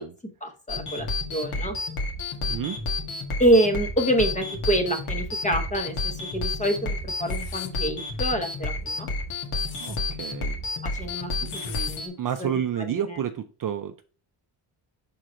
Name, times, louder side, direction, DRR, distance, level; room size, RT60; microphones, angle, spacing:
voice 1, 0.4-1.8 3.4-9.1 10.8-12.1 12.4-12.5 12.8-13.2, right 1 dB, 15° left, 5 dB, 0.9 m, -26 dB
sound 1, 0.7-12.1, left 2 dB, 80° left, 1.8 m, -30 dB
sound 2, 7.2-7.7 9.4-10.0 11.4-12.0, left 9 dB, 65° left, 0.8 m, -42 dB
voice 2, 9.8-10.6 12.2-14.0, right 9 dB, 45° right, 7 dB, 0.4 m, -30 dB
6.3 x 3.9 x 4.3 m, 0.37 s
wide cardioid pair, 175°, 50 cm